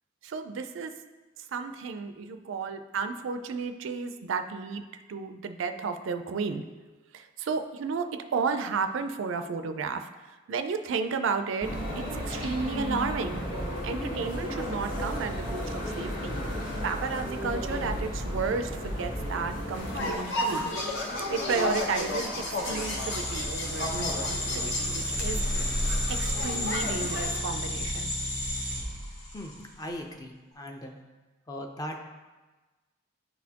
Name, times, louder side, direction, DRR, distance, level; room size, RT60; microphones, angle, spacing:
voice 1, 0.2-0.9 1.5-6.6 7.1-10.1 10.5-13.4 13.8-16.4 16.8-20.7 21.3-25.7 26.1-28.1, right 5 dB, 65° right, 8 dB, 0.4 m, -33 dB
sound 1, 11.6-20.1, equal, 75° left, 1.7 m, -33 dB
sound 2, 19.7-27.4, left 1 dB, 60° left, 0.9 m, -32 dB
sound 3, 22.6-29.7, left 1 dB, 40° left, 1.2 m, -32 dB
voice 2, 29.3-30.9 31.5-32.0, left 1 dB, 20° left, 3 dB, 0.5 m, -39 dB
9.9 x 4.1 x 2.8 m, 1.2 s
head